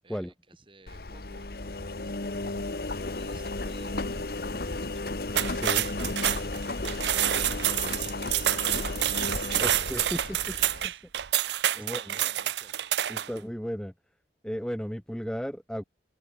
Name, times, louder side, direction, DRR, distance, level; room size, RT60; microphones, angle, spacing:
voice 1, 0.0-2.6 3.0-5.1 6.8-9.1 9.6-11.0 11.7-12.8 13.2-13.3, right 2 dB, 25° right, 3.9 m, -55 dB
Engine, 0.9-10.9, left 2 dB, 55° left, 1.2 m, -34 dB
sound 1, 5.3-13.4, right 12 dB, 70° right, 0.5 m, -28 dB
voice 2, 5.5-5.9 9.6-10.6 10.8-10.9 11.7-12.2 13.1-13.9 14.4-15.8, equal, 5° left, 1.0 m, -34 dB
open air
head